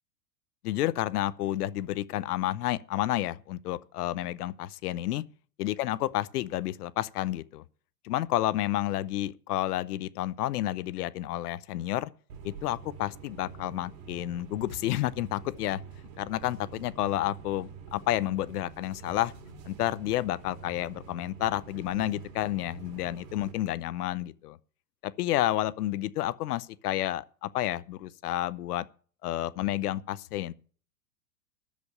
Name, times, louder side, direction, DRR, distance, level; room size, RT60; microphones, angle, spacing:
voice 1, 0.6-5.2 5.6-7.6 8.0-12.1 12.4-15.8 16.2-19.3 19.7-24.6 25.0-28.8 29.2-30.5, left 14 dB, 65° left, 0.8 m, -30 dB
sound 1, 12.3-23.5, right 6 dB, 50° right, 2.6 m, -47 dB
13.0 x 5.3 x 8.5 m
supercardioid pair, 155°, 49 cm